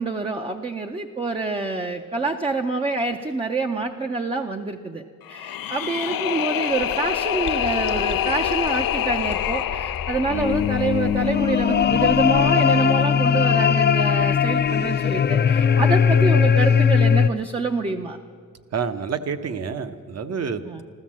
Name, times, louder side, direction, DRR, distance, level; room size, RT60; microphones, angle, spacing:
voice 1, 0.0-5.0 5.3-18.2 20.7-20.8, right 3 dB, 15° right, 4 dB, 0.5 m, -26 dB
sound 1, 5.2-12.3, left 11 dB, 80° left, 0.6 m, -27 dB
sound 2, 6.7-12.4, left 6 dB, 55° left, 1.0 m, -35 dB
sound 3, 10.3-17.3, left 7 dB, 30° left, 0.4 m, -19 dB
voice 2, 18.7-20.8, right 6 dB, 50° right, 10 dB, 0.9 m, -28 dB
15.0 x 13.5 x 7.4 m, 2.1 s
wide cardioid pair, 155°, 34 cm